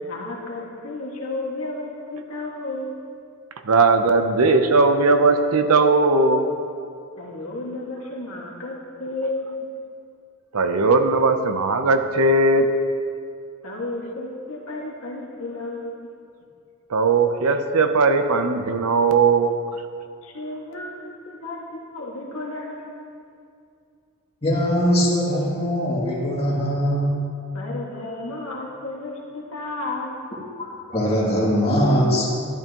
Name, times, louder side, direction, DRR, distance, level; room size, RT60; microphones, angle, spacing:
voice 1, 0.0-3.0 7.1-9.6 13.6-15.9 20.2-23.1 27.5-30.3, left 2 dB, 70° left, -3 dB, 1.9 m, -33 dB
voice 2, 3.6-6.4 10.5-12.7 16.9-19.5, right 3 dB, 75° right, 8 dB, 0.7 m, -18 dB
voice 3, 24.4-27.2 30.6-32.3, equal, 25° left, -6 dB, 2.5 m, -21 dB
12.5 x 11.5 x 3.0 m, 2.4 s
head